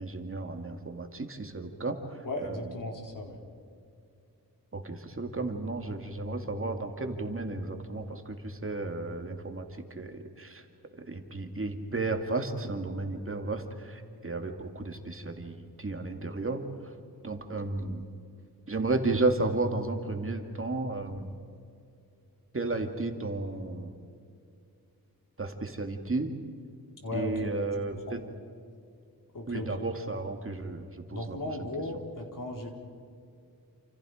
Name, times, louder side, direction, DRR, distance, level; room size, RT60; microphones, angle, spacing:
voice 1, 0.0-2.7 4.7-10.6 11.1-16.6 17.2-18.0 18.7-21.3 22.5-23.9 25.4-26.3 27.1-28.2 29.5-30.8 31.1-31.7, right 2 dB, 35° right, 5 dB, 2.4 m, -33 dB
voice 2, 2.2-3.3 27.0-27.5 28.1-28.2 29.3-29.9 31.1-32.7, left 1 dB, 60° left, 2 dB, 4.4 m, -36 dB
29.0 x 28.0 x 5.1 m, 2.4 s
wide cardioid pair, 85°, 36 cm